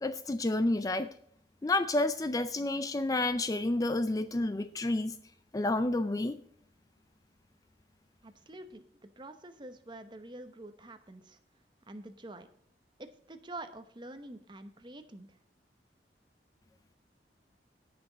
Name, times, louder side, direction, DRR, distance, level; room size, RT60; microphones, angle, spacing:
voice 1, 0.0-1.1 1.6-5.2 5.5-6.4, left 2 dB, 20° left, 12 dB, 0.4 m, -30 dB
voice 2, 8.2-11.4 11.9-12.5 13.0-15.4, right 2 dB, 25° right, 9 dB, 0.9 m, -47 dB
17.5 x 6.1 x 3.9 m, 0.67 s
head